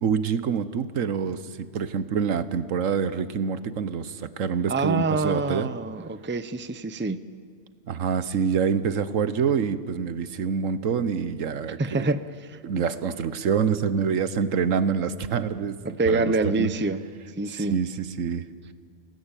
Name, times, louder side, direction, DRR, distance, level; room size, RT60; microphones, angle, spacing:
voice 1, 0.0-5.7 7.9-12.1 12.6-16.7 17.5-18.4, right 6 dB, 80° right, 13 dB, 1.4 m, -26 dB
voice 2, 4.7-7.2 11.8-12.2 12.5-12.6 15.8-17.0 17.4-17.8, right 3 dB, 10° right, 12 dB, 0.6 m, -26 dB
29.0 x 18.5 x 9.0 m, 2.1 s
omnidirectional pair, 1.3 m